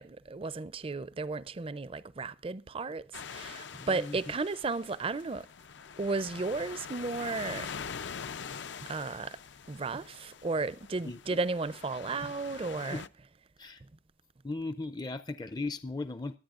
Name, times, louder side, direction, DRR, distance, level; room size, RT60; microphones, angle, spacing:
voice 1, 0.0-5.5 6.0-7.7 8.8-9.4 9.7-13.0 13.8-13.9, right 3 dB, 30° right, 0.5 m, -34 dB
sound 1, 3.1-13.1, left 6 dB, 75° left, 0.6 m, -44 dB
voice 2, 3.8-4.2 11.0-11.4 12.9-13.0 13.6-13.8 14.4-16.4, left 3 dB, 20° left, 0.5 m, -37 dB
23.0 x 8.5 x 2.5 m
head